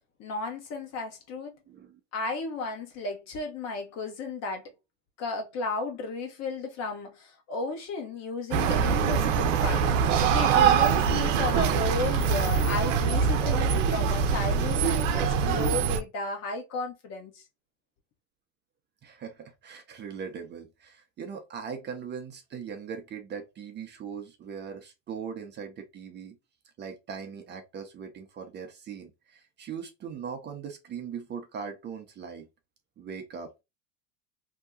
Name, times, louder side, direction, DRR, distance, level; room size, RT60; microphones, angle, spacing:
voice 1, 0.2-1.5 2.1-4.6 5.2-9.9 10.3-17.4, left 3 dB, 45° left, 1.1 m, -34 dB
voice 2, 1.7-2.0 19.0-26.4 26.8-32.5 33.0-33.5, right 6 dB, 30° right, 0.6 m, -40 dB
sound 1, 8.5-16.0, right 7 dB, 75° right, 0.7 m, -24 dB
2.8 x 2.2 x 3.5 m
hypercardioid pair, 105°, 38 cm